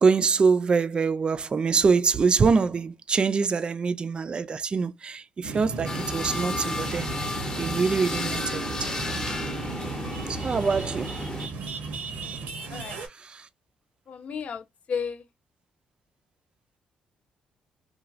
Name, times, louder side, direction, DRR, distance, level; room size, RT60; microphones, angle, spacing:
voice 1, 0.0-7.1 7.6-9.3 10.3-11.1 13.2-13.5, right 5 dB, 35° right, 0.4 m, -24 dB
sound 1, 5.4-13.1, right 4 dB, 80° right, 0.8 m, -35 dB
sound 2, 5.8-11.5, left 2 dB, 25° left, 0.8 m, -33 dB
voice 2, 12.7-13.0 14.1-15.2, left 6 dB, 55° left, 0.5 m, -33 dB
3.0 x 2.3 x 2.4 m
cardioid pair, 80°, 3 cm